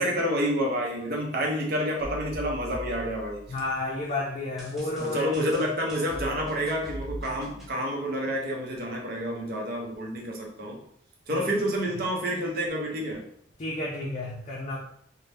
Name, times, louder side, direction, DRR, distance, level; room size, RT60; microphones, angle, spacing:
voice 1, 0.0-3.4 5.0-10.8 11.3-13.2, equal, 55° right, 0 dB, 0.7 m, -29 dB
sound 1, 2.0-3.8 4.6-7.7, equal, ahead, 0.6 m, -40 dB
voice 2, 3.5-5.3 11.3-11.5 13.6-14.8, left 2 dB, 40° left, -3 dB, 0.5 m, -31 dB
2.7 x 2.1 x 3.3 m, 0.67 s
head